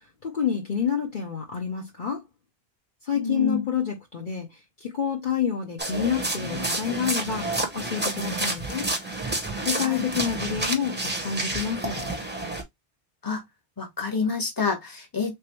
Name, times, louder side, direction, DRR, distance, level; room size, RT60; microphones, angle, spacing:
voice 1, 0.2-2.2 3.0-8.9 9.6-12.0, left 8 dB, 50° left, 0.9 m, -28 dB
voice 2, 3.1-3.7 9.8-10.1 13.2-13.4 13.8-15.4, left 4 dB, 20° left, 1.1 m, -28 dB
sound 1, 5.8-12.6, right 2 dB, 10° right, 0.6 m, -29 dB
3.4 x 2.8 x 3.0 m
omnidirectional pair, 1.1 m